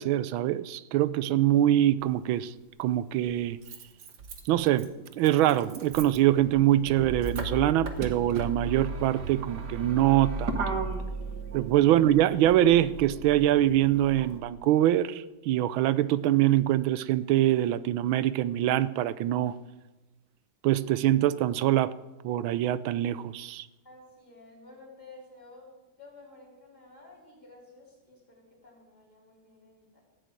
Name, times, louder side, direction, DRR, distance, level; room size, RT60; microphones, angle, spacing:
voice 1, 0.0-2.5 2.8-3.6 4.5-10.6 11.5-19.6 20.6-21.9 22.2-23.7, right 13 dB, 80° right, 1.4 m, -24 dB
Motor vehicle (road), 2.0-2.1 3.3-14.4, right 3 dB, 55° right, 1.8 m, -36 dB
voice 2, 23.8-25.7 26.0-30.0, left 2 dB, 10° left, 3.7 m, -52 dB
15.0 x 6.8 x 8.9 m
omnidirectional pair, 2.2 m